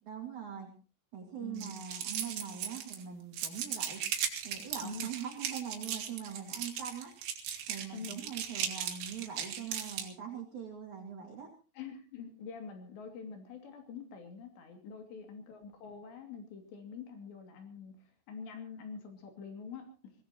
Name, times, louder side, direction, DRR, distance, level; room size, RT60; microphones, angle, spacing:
voice 1, 0.1-0.7 1.1-4.0 4.4-7.1 7.7-11.5 15.0-15.3, right 8 dB, 45° right, -1 dB, 3.3 m, -42 dB
voice 2, 1.2-1.7 4.8-5.1 7.9-8.2 11.8-18.0 18.3-20.1, left 5 dB, 70° left, 4 dB, 4.8 m, -46 dB
sound 1, 1.6-3.0 3.3-10.1, right 9 dB, 85° right, 4.4 m, -37 dB
24.0 x 18.0 x 3.0 m, 0.35 s
omnidirectional pair, 5.2 m